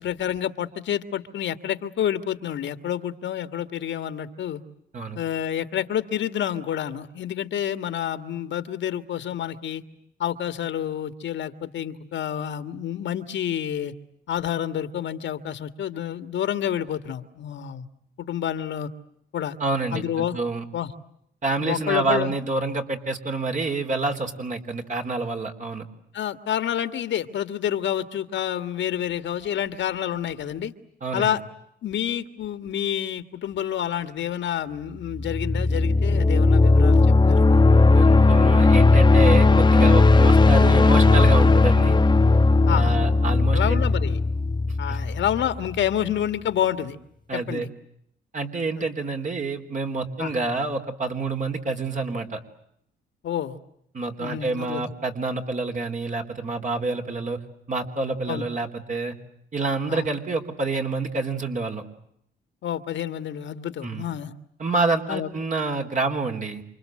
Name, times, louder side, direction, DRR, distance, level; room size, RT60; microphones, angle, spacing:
voice 1, 0.0-4.6 5.2-9.8 10.2-13.9 14.3-17.9 18.2-18.9 19.3-19.6 19.9-20.4 20.7-20.9 21.6-22.3 26.1-30.7 31.1-31.4 31.8-37.6 42.7-43.0 43.5-44.2 44.8-47.0 47.3-47.7 48.8-48.9 50.2-50.3 53.2-53.6 54.2-54.9 58.3-58.5 59.9-60.1 62.6-64.3 65.1-65.3, left 10 dB, 70° left, 11 dB, 1.9 m, -28 dB
voice 2, 19.6-20.6 21.4-25.9 31.0-31.4 37.9-42.0 42.8-43.8 44.9-45.0 47.3-47.7 48.3-52.4 53.9-57.4 57.7-59.1 59.5-61.8 63.8-64.0 64.6-66.6, right 3 dB, 40° right, 4 dB, 3.9 m, -27 dB
sound 1, 35.1-45.9, left 3 dB, 20° left, 1.0 m, -17 dB
28.5 x 26.0 x 7.8 m, 0.73 s
cardioid pair, 90°, 20 cm